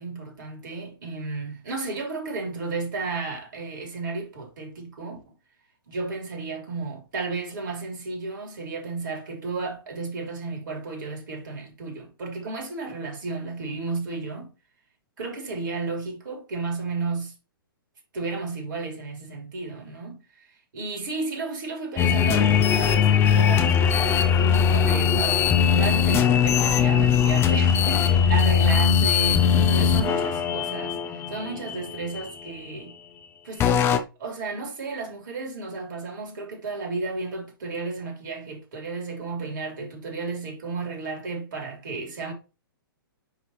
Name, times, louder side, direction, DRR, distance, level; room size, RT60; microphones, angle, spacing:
voice 1, 0.0-5.2 5.9-14.5 15.2-17.3 18.1-20.2 20.7-25.5 25.7-32.9 33.4-33.7 34.2-42.3, right 3 dB, 55° right, 3.1 m, -33 dB
sound 1, 22.0-32.7 33.6-34.0, left 7 dB, 20° left, 0.7 m, -20 dB
9.9 x 3.3 x 3.1 m
figure-of-eight pair, 115°, 12 cm